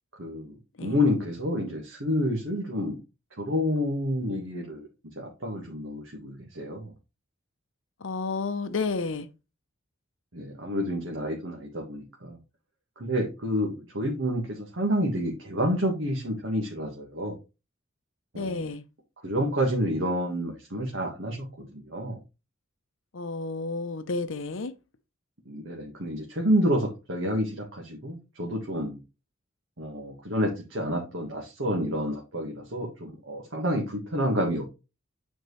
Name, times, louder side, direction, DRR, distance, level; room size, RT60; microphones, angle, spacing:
voice 1, 0.2-0.5 0.8-3.0 3.4-4.9 5.2-6.9 10.3-12.4 13.0-17.4 18.3-18.7 19.2-22.2 25.4-29.0 29.8-34.7, equal, 65° right, 1.6 m, -29 dB
voice 2, 8.0-9.3 18.3-18.8 23.1-24.7, left 3 dB, 65° left, 0.7 m, -31 dB
9.3 x 4.5 x 3.2 m
head